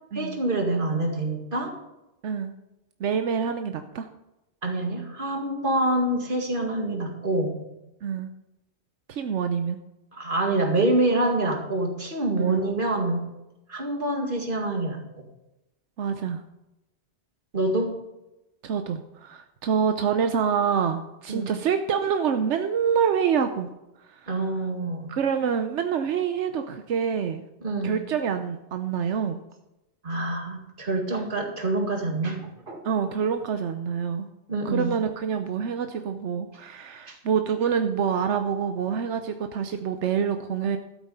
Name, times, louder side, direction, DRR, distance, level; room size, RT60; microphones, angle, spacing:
voice 1, 0.1-1.7 4.6-7.6 10.1-13.2 13.7-15.0 17.5-18.0 21.3-21.5 24.3-25.1 27.6-28.0 30.0-32.8 34.5-34.9 37.1-37.2, right 2 dB, 50° right, 2 dB, 2.3 m, -26 dB
voice 2, 3.0-4.1 8.0-8.3 9.1-9.8 12.4-12.7 16.0-16.4 18.6-23.7 24.1-24.3 25.1-27.4 27.8-29.4 32.8-34.3 34.6-40.8, right 7 dB, 85° right, 7 dB, 1.1 m, -26 dB
12.5 x 8.3 x 5.5 m, 0.93 s
omnidirectional pair, 1.2 m